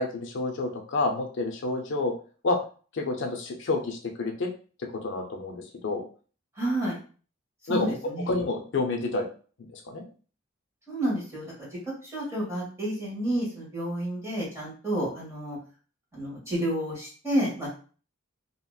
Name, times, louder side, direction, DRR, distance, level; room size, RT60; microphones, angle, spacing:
voice 1, 0.0-2.1 2.4-2.6 2.9-4.5 4.8-6.0 7.7-7.9 8.3-9.3 9.7-10.0, left 2 dB, 65° left, 2 dB, 0.5 m, -29 dB
voice 2, 6.6-7.0 7.7-8.3 10.9-11.7 12.0-15.6 16.1-17.7, right 1 dB, 15° right, -6 dB, 1.5 m, -30 dB
2.8 x 2.7 x 2.3 m, 0.39 s
head